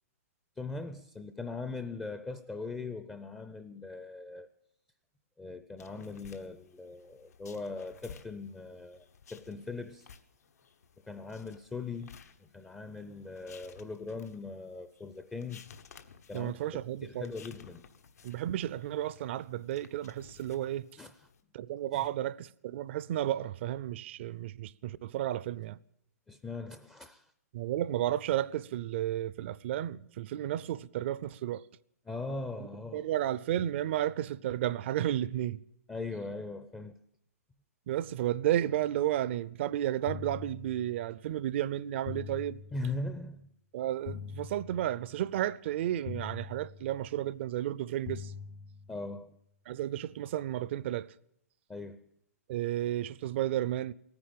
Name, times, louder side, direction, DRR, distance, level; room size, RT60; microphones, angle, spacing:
voice 1, 0.6-4.5 5.4-10.1 11.0-15.6 16.3-16.6 17.0-17.8 21.0-21.3 21.9-22.1 26.3-27.3 32.0-33.1 35.9-36.9 42.7-43.5 48.9-49.4 51.7-52.0, left 3 dB, 10° left, 0.5 m, -40 dB
sound 1, 5.8-21.4, left 6 dB, 75° left, 1.3 m, -56 dB
voice 2, 16.3-17.3 18.2-20.9 21.5-25.8 27.5-31.6 32.6-32.7 32.9-35.6 37.9-42.6 43.7-48.3 49.7-51.1 52.5-53.9, right 12 dB, 45° right, 0.5 m, -32 dB
sound 2, 40.1-41.2 42.1-43.2 44.1-45.2 46.1-47.2 48.1-49.2, left 7 dB, 45° left, 1.0 m, -44 dB
16.5 x 9.6 x 8.8 m
hypercardioid pair, 140°, 9 cm